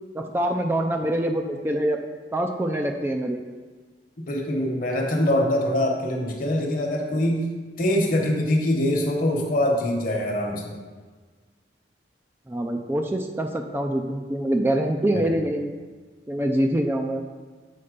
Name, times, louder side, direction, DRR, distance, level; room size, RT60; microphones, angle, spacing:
voice 1, 0.1-2.0 2.3-3.4 12.5-15.7 16.3-17.2, right 1 dB, 15° right, 3 dB, 0.4 m, -25 dB
voice 2, 4.3-7.5 7.8-10.7 15.1-15.4, left 1 dB, 50° left, 1 dB, 1.1 m, -23 dB
7.0 x 4.3 x 5.1 m, 1.4 s
head